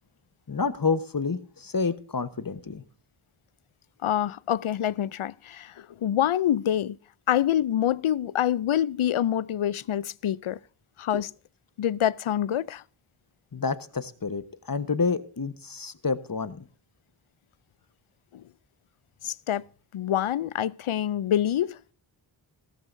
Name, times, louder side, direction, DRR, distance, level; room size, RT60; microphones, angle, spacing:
voice 1, 0.5-2.8 11.1-11.2 13.5-16.6, left 4 dB, 45° left, 1.2 m, -29 dB
voice 2, 4.0-7.0 7.3-10.6 11.0-11.3 11.8-12.8 18.3-18.4 19.2-19.6 19.9-21.8, left 11 dB, 80° left, 0.6 m, -26 dB
16.0 x 14.5 x 2.7 m
wide cardioid pair, 50°, 49 cm